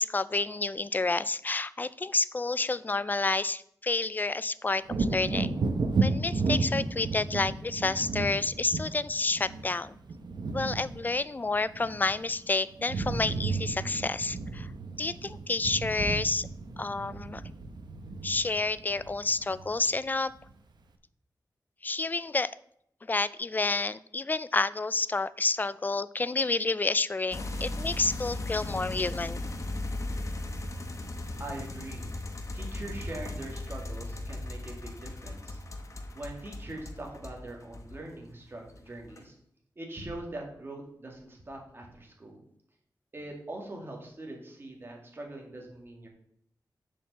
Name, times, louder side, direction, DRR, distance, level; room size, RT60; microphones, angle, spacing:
voice 1, 0.0-5.6 6.0-10.0 10.5-14.7 15.0-16.5 16.8-17.4 18.2-20.3 21.8-22.5 23.1-29.5, left 3 dB, 25° left, 17 dB, 0.3 m, -29 dB
Wind / Thunder, 4.8-12.4 12.7-19.9 20.4-20.5, right 3 dB, 85° right, 0.9 m, -33 dB
sound 1, 27.3-38.2 38.6-39.2, left 2 dB, 45° left, 1.0 m, -37 dB
voice 2, 31.4-32.1 32.5-39.4 39.8-42.4 43.1-46.1, right 1 dB, 30° right, 0 dB, 2.1 m, -42 dB
7.1 x 5.2 x 6.7 m, 0.71 s
wide cardioid pair, 130°, 7 cm